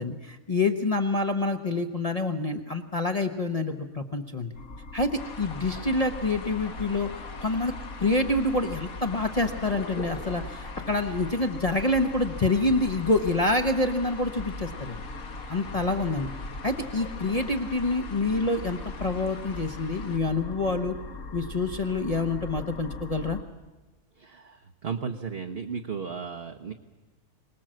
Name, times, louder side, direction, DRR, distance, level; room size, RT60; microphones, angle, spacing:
voice 1, 0.0-4.5 4.9-7.1 7.4-7.7 8.0-15.0 15.5-16.3 16.6-20.9 21.3-23.4, left 2 dB, 30° left, 4 dB, 0.9 m, -27 dB
sound 1, 4.5-23.4, left 2 dB, 65° left, 1.6 m, -40 dB
sound 2, 5.2-20.2, left 4 dB, 90° left, 2.2 m, -44 dB
voice 2, 24.2-26.7, right 6 dB, 50° right, 4 dB, 1.1 m, -35 dB
24.0 x 19.5 x 7.7 m, 1.2 s
omnidirectional pair, 1.4 m